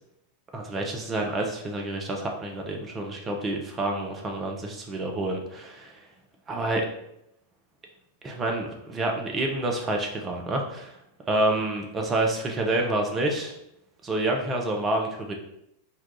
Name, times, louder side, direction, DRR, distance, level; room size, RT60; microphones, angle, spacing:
voice 1, 0.5-6.0 6.5-6.9 8.2-11.0 11.3-13.6 14.0-15.3, right 2 dB, 20° right, 1 dB, 0.6 m, -28 dB
2.8 x 2.3 x 3.7 m, 0.79 s
figure-of-eight pair, 90°, 0 cm